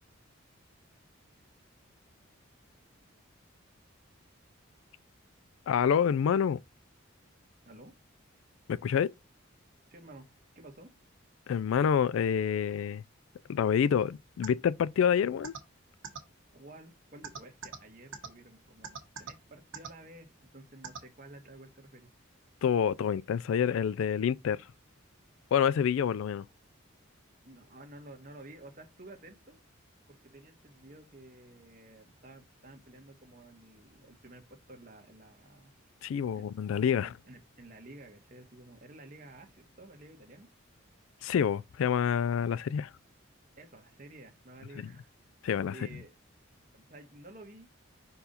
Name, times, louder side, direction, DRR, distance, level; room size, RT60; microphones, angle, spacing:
voice 1, 5.7-6.6 8.7-9.1 11.5-13.0 13.5-15.5 22.6-24.6 25.5-26.4 36.0-37.1 41.2-42.9 44.8-44.9 45.4-45.7, left 8 dB, 75° left, 0.3 m, -27 dB
voice 2, 9.9-10.2 10.5-10.9 16.5-22.1 27.4-29.6 30.1-35.7 36.3-36.5 36.9-40.5 43.6-46.1 46.7-47.7, right 2 dB, 40° right, 1.4 m, -52 dB
sound 1, 14.4-14.5 15.4-15.6 16.0-16.2 17.2-17.8 18.1-18.3 18.8-19.3 19.7-19.9 20.8-21.0, right 6 dB, 70° right, 1.5 m, -39 dB
5.2 x 4.6 x 4.2 m
head